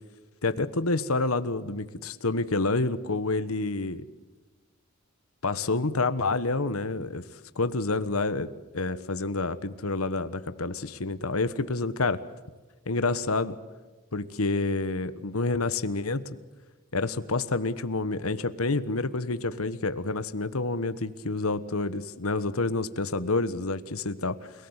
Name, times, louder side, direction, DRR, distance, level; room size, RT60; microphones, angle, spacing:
voice 1, 0.4-4.1 5.4-7.2 7.5-12.2 12.9-13.6 14.1-16.4 16.9-24.5, left 3 dB, 90° left, 13 dB, 1.3 m, -28 dB
30.0 x 18.5 x 8.2 m, 1.3 s
head